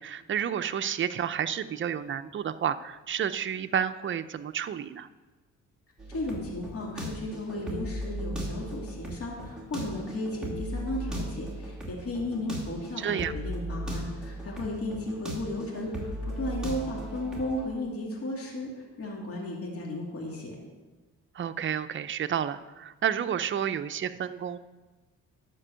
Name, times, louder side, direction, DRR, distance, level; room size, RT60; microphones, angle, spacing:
voice 1, 0.0-5.1 13.0-13.3 21.3-24.6, right 9 dB, 40° right, 10 dB, 0.6 m, -30 dB
sound 1, 6.0-17.6, equal, ahead, 2.8 m, -37 dB
voice 2, 6.1-20.6, left 1 dB, 50° left, -2 dB, 2.4 m, -35 dB
12.0 x 4.5 x 7.5 m, 1.2 s
cardioid pair, 90°, 30 cm